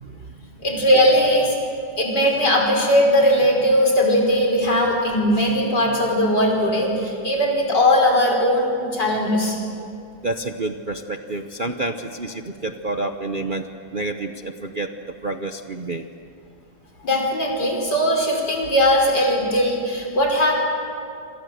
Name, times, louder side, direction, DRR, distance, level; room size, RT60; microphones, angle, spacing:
voice 1, 0.6-1.6 2.0-9.6 17.0-20.5, equal, 70° left, 1 dB, 6.0 m, -19 dB
voice 2, 10.2-14.9 15.2-16.1, right 2 dB, 40° right, 5 dB, 0.8 m, -29 dB
27.5 x 26.5 x 7.9 m, 2.5 s
omnidirectional pair, 1.9 m